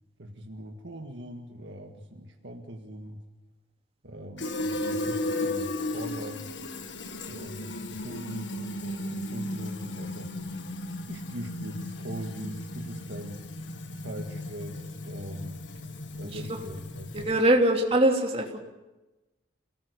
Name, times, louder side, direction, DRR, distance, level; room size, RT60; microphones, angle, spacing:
voice 1, 0.2-3.2 4.0-6.5 7.3-10.3 11.1-13.5 13.9-15.6 16.2-17.1, equal, 65° right, 3 dB, 1.9 m, -41 dB
Fill (with liquid), 4.4-17.5, left 1 dB, 65° left, 1.7 m, -35 dB
voice 2, 16.2-16.6 17.1-18.6, right 1 dB, 30° right, 1 dB, 3.1 m, -23 dB
28.0 x 18.5 x 6.9 m, 1.1 s
head